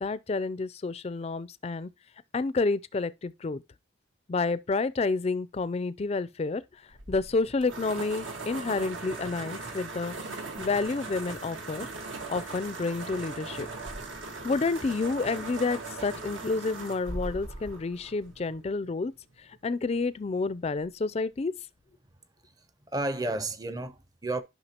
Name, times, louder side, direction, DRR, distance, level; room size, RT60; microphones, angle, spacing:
voice 1, 0.0-1.9 2.3-3.6 4.3-6.6 7.1-10.1 10.6-11.9 12.3-13.7 14.4-19.1 19.6-21.5, left 3 dB, 30° left, 0.4 m, -29 dB
sound 1, 6.9-18.7, right 3 dB, 80° right, 1.7 m, -39 dB
voice 2, 22.4-24.4, right 2 dB, 20° right, 0.6 m, -32 dB
11.0 x 5.6 x 2.9 m
head